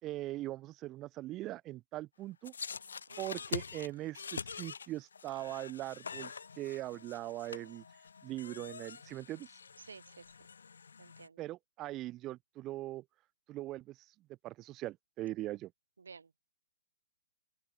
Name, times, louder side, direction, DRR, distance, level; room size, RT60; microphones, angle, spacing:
voice 1, 0.0-2.5 3.2-7.8 8.2-9.5 11.4-13.0 13.5-14.0 14.4-15.7, right 16 dB, 25° right, 2.2 m, -41 dB
sound 1, 2.4-11.3, left 6 dB, 65° left, 0.8 m, -45 dB
voice 2, 3.1-3.4 9.8-10.3 11.0-11.4 16.0-16.3, right 5 dB, 65° right, 6.7 m, -53 dB
open air
figure-of-eight pair, 120°, 0 cm